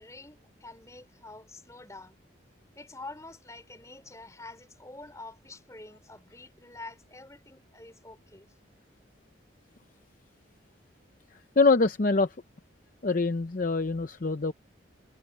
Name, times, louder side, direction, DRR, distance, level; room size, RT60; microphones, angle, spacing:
voice 1, 0.0-2.2 2.7-8.5, left 2 dB, 15° left, 3.4 m, -47 dB
voice 2, 11.6-12.3 13.0-14.5, left 3 dB, 45° left, 0.6 m, -24 dB
head